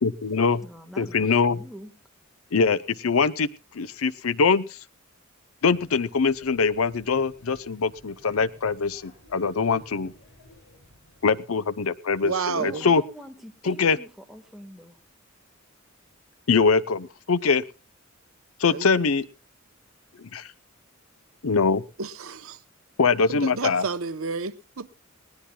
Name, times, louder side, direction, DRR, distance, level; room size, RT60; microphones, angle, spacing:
voice 1, 0.0-0.6 1.0-1.6 2.5-3.5 3.7-4.8 5.6-10.1 11.2-13.0 13.6-14.0 16.5-17.6 18.6-19.3 20.2-20.5 21.4-21.8 23.0-23.8, left 5 dB, 85° left, 0.7 m, -23 dB
voice 2, 0.6-1.9 12.6-15.0, equal, ahead, 1.5 m, -44 dB
Male speech man speaking / Child speech kid speaking / Chatter, 5.6-11.3, equal, 65° left, 7.5 m, -54 dB
voice 3, 12.2-12.9 18.7-18.9 22.0-22.6 23.3-24.9, right 5 dB, 80° right, 0.8 m, -30 dB
20.5 x 18.0 x 2.3 m
head